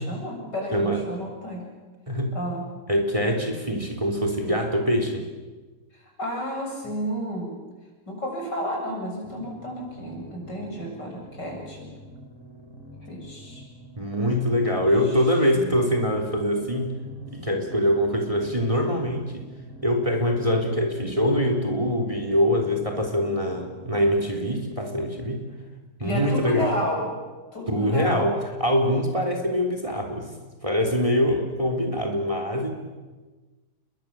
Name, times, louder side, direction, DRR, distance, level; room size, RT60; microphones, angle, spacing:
voice 1, 0.0-1.7 2.3-2.6 6.2-7.6 8.1-11.9 13.1-13.6 15.5-15.8 26.0-27.0 27.5-28.3, equal, 70° left, 0 dB, 8.2 m, -32 dB
voice 2, 2.9-5.3 14.0-17.0 17.3-19.5 19.8-25.5 26.0-26.8 27.7-30.3 30.6-32.7, equal, 20° right, 4 dB, 3.6 m, -24 dB
sound 1, 9.2-24.3, equal, 15° left, 5.5 m, -45 dB
29.5 x 22.5 x 7.7 m, 1.3 s
omnidirectional pair, 1.9 m